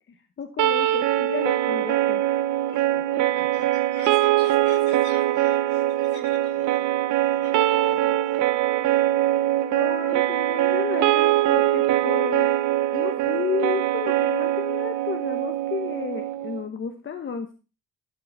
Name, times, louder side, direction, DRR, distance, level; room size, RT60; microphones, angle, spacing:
voice 1, 0.4-2.2 9.7-12.5 12.9-17.5, left 6 dB, 40° left, 7 dB, 1.1 m, -32 dB
sound 1, 0.6-16.6, right 14 dB, 80° right, 0.6 m, -22 dB
voice 2, 2.7-8.5, left 4 dB, 75° left, 1 dB, 4.1 m, -47 dB
12.0 x 4.6 x 5.3 m, 0.32 s
cardioid pair, 90°, 30 cm